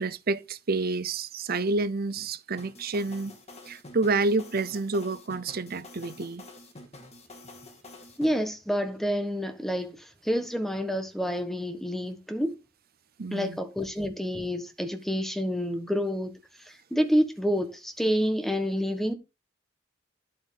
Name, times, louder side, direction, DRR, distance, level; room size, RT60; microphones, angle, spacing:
voice 1, 0.0-3.3 3.7-6.4 13.2-13.6, right 3 dB, 50° right, 0.7 m, -29 dB
sound 1, 2.6-8.3, left 2 dB, 35° left, 2.1 m, -48 dB
voice 2, 8.2-12.6 13.3-16.3 16.6-19.1, equal, ahead, 1.3 m, -28 dB
11.0 x 7.7 x 3.8 m
head